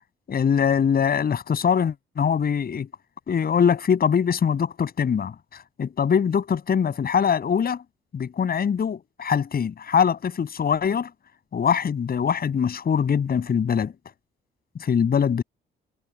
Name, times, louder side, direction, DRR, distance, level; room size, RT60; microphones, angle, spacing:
voice 1, 0.3-2.9 3.3-7.8 8.1-11.1 11.5-13.9 14.8-15.4, left 7 dB, 50° left, 8.0 m, -23 dB
cardioid pair, 90°, 20 cm